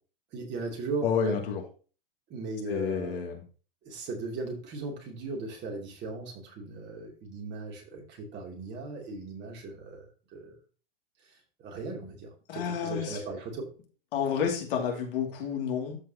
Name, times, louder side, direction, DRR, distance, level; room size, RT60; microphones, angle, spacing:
voice 1, 0.3-1.4 2.3-3.2 3.8-10.5 11.2-13.7, right 3 dB, 35° right, 1 dB, 3.2 m, -38 dB
voice 2, 1.0-1.6 2.7-3.4 12.5-13.2 14.1-16.0, left 7 dB, 65° left, 1 dB, 2.7 m, -30 dB
13.0 x 4.8 x 3.0 m, 0.37 s
hypercardioid pair, 110°, 30 cm